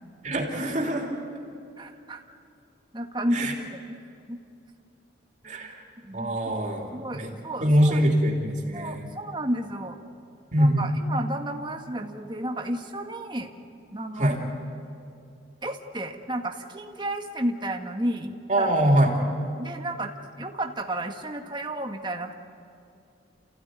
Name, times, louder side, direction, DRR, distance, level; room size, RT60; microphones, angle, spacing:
voice 1, 0.2-1.1 3.3-3.5 5.4-5.8 6.1-7.3 7.6-9.1 10.5-10.9 14.2-14.4 18.5-19.1, right 1 dB, 40° right, 1 dB, 3.0 m, -23 dB
voice 2, 1.8-2.2 2.9-4.0 4.3-4.4 6.0-6.5 6.9-8.1 8.7-10.0 10.6-13.5 13.9-14.4 15.6-18.7 19.0-19.1 19.6-22.3, right 1 dB, 25° right, 4 dB, 1.5 m, -32 dB
29.5 x 15.5 x 9.4 m, 2.5 s
head